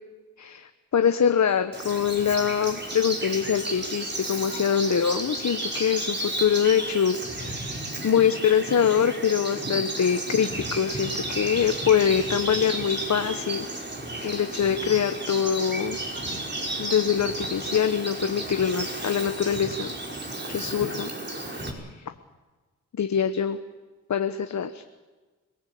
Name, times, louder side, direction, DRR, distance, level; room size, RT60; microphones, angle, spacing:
voice 1, 0.4-13.7 14.2-16.0 16.8-19.9 20.5-21.1 21.5-21.6 23.0-23.6 24.1-24.8, left 8 dB, 55° left, 8 dB, 1.2 m, -24 dB
Bird vocalization bird call bird song, 1.7-21.7, right 2 dB, 35° right, 5.2 m, -33 dB
26.0 x 18.5 x 8.5 m, 1.3 s
cardioid pair, 65°, 33 cm